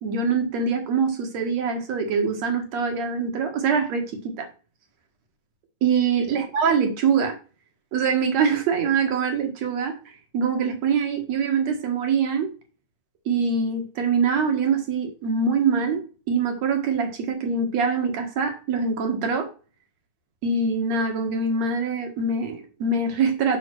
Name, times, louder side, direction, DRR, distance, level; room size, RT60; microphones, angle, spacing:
voice 1, 0.0-4.5 5.8-7.4 7.9-10.0 10.3-12.5 13.3-19.5 20.4-23.6, right 5 dB, 60° right, 2.9 m, -24 dB
8.0 x 5.7 x 6.2 m
omnidirectional pair, 3.5 m